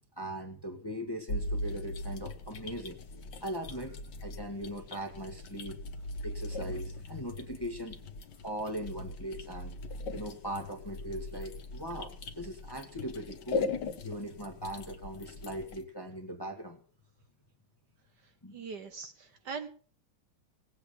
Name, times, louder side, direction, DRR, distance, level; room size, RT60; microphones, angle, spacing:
voice 1, 0.2-3.0 3.4-4.0 4.2-5.8 6.2-8.0 8.4-9.8 10.1-13.7 14.0-16.8 18.4-18.6, equal, 10° left, 3 dB, 1.4 m, -39 dB
sound 1, 1.3-15.8, left 2 dB, 55° left, 1.7 m, -40 dB
voice 2, 18.5-19.7, right 5 dB, 60° right, 8 dB, 1.5 m, -41 dB
18.0 x 8.3 x 6.8 m, 0.43 s
omnidirectional pair, 2.3 m